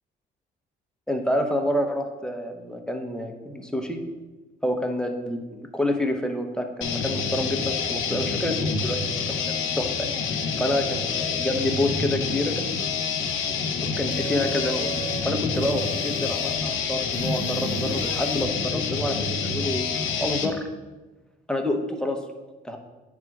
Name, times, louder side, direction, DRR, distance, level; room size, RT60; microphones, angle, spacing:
voice 1, 1.1-4.0 4.6-10.1 10.6-12.7 13.8-14.9 15.2-19.9 20.2-20.6 21.5-22.2 22.6-22.8, left 1 dB, 5° left, 4 dB, 0.9 m, -28 dB
sound 1, 6.8-20.5, left 5 dB, 75° left, 0.9 m, -27 dB
sound 2, 14.1-15.2 15.5-16.6 17.1-18.5, right 2 dB, 85° right, 1.7 m, -36 dB
9.3 x 3.7 x 4.7 m, 1.2 s
cardioid pair, 90°, 20 cm